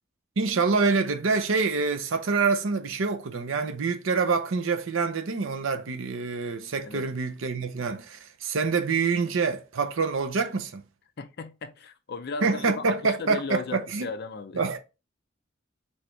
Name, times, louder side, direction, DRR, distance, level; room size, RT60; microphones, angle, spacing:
voice 1, 0.4-10.8 12.4-14.1 14.5-14.8, right 4 dB, 80° right, 0.6 m, -26 dB
voice 2, 11.2-14.6, left 4 dB, 55° left, 0.6 m, -36 dB
4.3 x 3.4 x 3.2 m
head